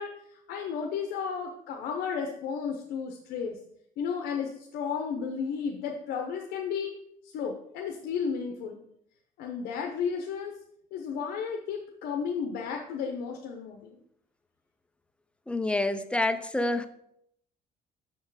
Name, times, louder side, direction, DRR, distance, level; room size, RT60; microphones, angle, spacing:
voice 1, 0.0-3.6 4.0-7.0 7.2-8.8 9.4-10.6 10.9-14.0, left 6 dB, 85° left, 2 dB, 0.7 m, -33 dB
voice 2, 15.5-16.9, left 2 dB, 5° left, 10 dB, 0.4 m, -27 dB
6.1 x 4.4 x 4.6 m, 0.72 s
cardioid pair, 115°, 16 cm